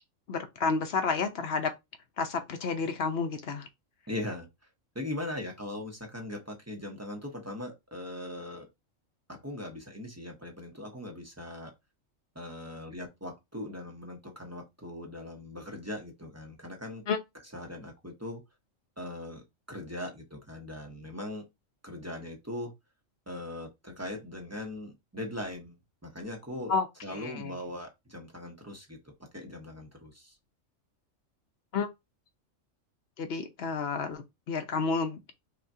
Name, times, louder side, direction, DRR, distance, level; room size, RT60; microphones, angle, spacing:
voice 1, 0.3-1.7 2.2-3.7 17.1-17.2 26.7-26.9 27.1-27.5 31.7-31.9 33.2-35.2, left 4 dB, 60° left, 0.8 m, -30 dB
voice 2, 4.1-4.5 4.9-8.7 9.3-11.7 12.3-17.0 17.5-18.4 19.0-21.4 21.8-22.7 23.3-25.8 26.0-26.7 27.0-29.0 29.3-30.4, left 1 dB, 15° right, 0.8 m, -40 dB
5.6 x 2.3 x 2.7 m
omnidirectional pair, 1.4 m